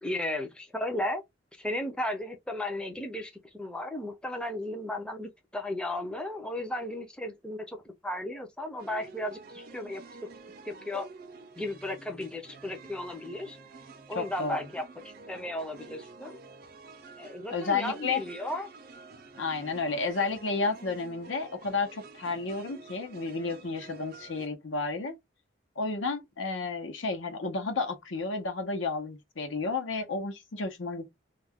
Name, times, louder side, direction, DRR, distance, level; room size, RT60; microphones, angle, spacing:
voice 1, 0.0-1.2 1.6-10.0 10.6-11.1 11.6-13.6 14.1-14.9 15.3-16.4 17.2-18.7, left 1 dB, 5° left, 0.5 m, -35 dB
sound 1, 8.8-24.5, right 3 dB, 50° right, 0.5 m, -49 dB
voice 2, 14.1-14.6 17.5-18.2 19.4-25.1 25.8-31.1, left 4 dB, 85° left, 0.8 m, -32 dB
2.3 x 2.2 x 3.5 m
head